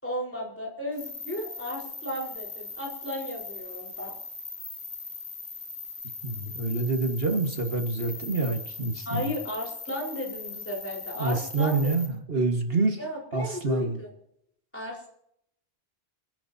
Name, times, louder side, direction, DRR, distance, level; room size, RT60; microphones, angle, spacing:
voice 1, 0.0-4.1 9.0-11.9 13.0-14.1 14.7-15.1, left 1 dB, 10° left, -2 dB, 4.5 m, -34 dB
sound 1, 1.0-12.1, left 4 dB, 85° left, 3.0 m, -40 dB
voice 2, 6.2-9.3 11.2-13.0 13.3-14.0, right 3 dB, 65° right, 4 dB, 1.9 m, -27 dB
28.0 x 10.5 x 2.8 m, 0.73 s
omnidirectional pair, 1.1 m